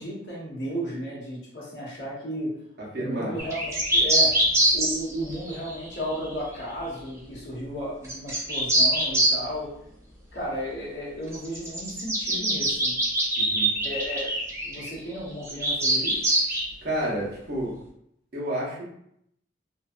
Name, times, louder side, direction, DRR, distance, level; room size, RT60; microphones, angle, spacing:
voice 1, 0.0-2.5 3.0-4.3 4.7-9.7 10.3-12.9 13.8-14.3 14.6-16.3, equal, 70° left, -6 dB, 1.0 m, -34 dB
voice 2, 2.9-3.3 13.4-13.7 16.8-17.8 18.3-18.8, right 1 dB, 55° right, -6 dB, 0.9 m, -30 dB
sound 1, 3.4-6.3 8.0-9.4 11.3-14.9 15.5-16.6, right 1 dB, 15° right, 0.5 m, -23 dB
2.6 x 2.2 x 2.4 m, 0.74 s
head